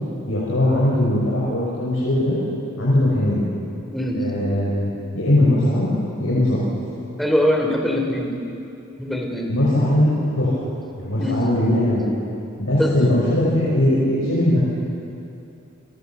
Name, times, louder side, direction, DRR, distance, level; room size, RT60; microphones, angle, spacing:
voice 1, 0.3-2.4 2.8-3.5 4.1-5.9 6.2-6.6 9.5-10.5 11.0-12.0 12.6-14.7, left 1 dB, 85° left, -7 dB, 5.8 m, -20 dB
voice 2, 3.9-4.5 7.2-8.3 9.0-9.5 11.2-11.4 12.8-12.9, equal, ahead, 1 dB, 3.1 m, -22 dB
29.0 x 21.5 x 7.2 m, 2.7 s
head